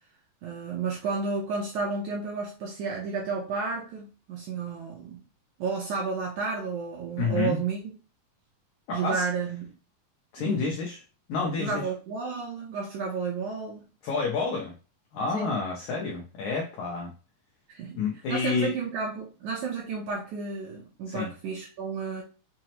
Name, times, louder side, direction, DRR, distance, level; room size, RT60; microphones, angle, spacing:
voice 1, 0.4-5.2 5.6-7.8 8.9-9.7 10.4-10.6 11.6-13.9 15.3-15.6 17.7-18.0 18.3-22.2, right 4 dB, 75° right, -2 dB, 1.8 m, -32 dB
voice 2, 7.2-7.6 8.9-9.3 10.3-11.0 11.3-11.9 14.0-14.7 15.1-17.1 17.9-18.7 21.1-21.3, left 4 dB, 85° left, -1 dB, 1.7 m, -29 dB
6.0 x 2.0 x 2.8 m, 0.33 s
omnidirectional pair, 4.2 m